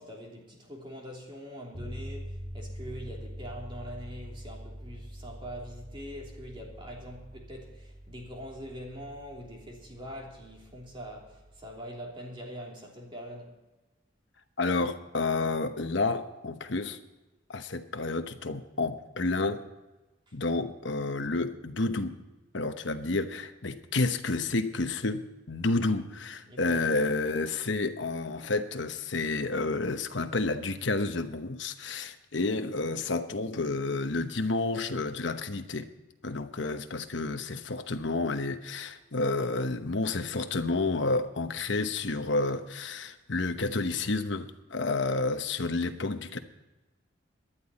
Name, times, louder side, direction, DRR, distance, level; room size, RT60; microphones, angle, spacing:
voice 1, 0.0-13.5 20.3-20.4 26.5-27.1, equal, 25° right, 3.1 m, -43 dB
sound 1, 1.7-11.9, equal, 85° right, 4.4 m, -44 dB
voice 2, 14.6-17.0 17.5-19.6 20.3-22.1 22.5-35.9 36.2-46.4, left 3 dB, 65° left, 1.0 m, -30 dB
18.5 x 11.5 x 4.2 m
head